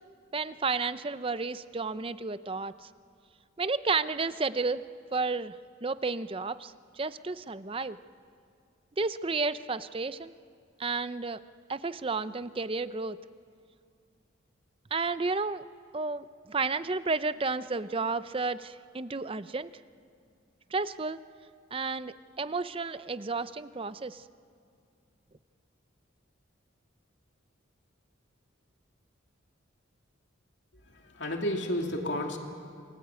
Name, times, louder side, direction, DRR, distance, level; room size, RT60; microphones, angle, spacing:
voice 1, 0.3-2.9 3.6-4.8 5.1-5.5 5.8-8.0 9.0-10.3 10.8-11.4 11.7-13.2 14.9-15.6 15.9-19.7 20.7-21.2 21.7-24.2, right 4 dB, 25° right, 14 dB, 0.5 m, -32 dB
voice 2, 30.9-32.4, left 1 dB, 60° left, 2 dB, 2.9 m, -31 dB
28.0 x 20.5 x 8.3 m, 2.4 s
head